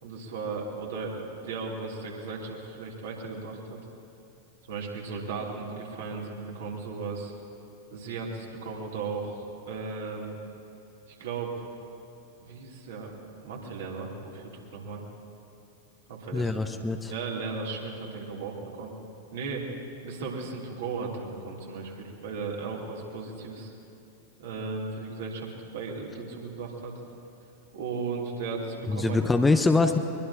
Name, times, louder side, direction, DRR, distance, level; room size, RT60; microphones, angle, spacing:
voice 1, 0.0-3.8 4.6-7.3 7.9-10.4 11.1-11.5 12.4-13.1 13.4-15.0 16.1-16.5 17.1-18.9 19.3-19.7 20.0-23.7 24.4-26.9 27.7-29.2, right 4 dB, 60° right, -2 dB, 3.0 m, -36 dB
voice 2, 16.3-17.1 28.9-30.0, left 3 dB, 10° left, 7 dB, 0.8 m, -23 dB
22.5 x 22.0 x 2.8 m, 2.7 s
figure-of-eight pair, 90°, 0 cm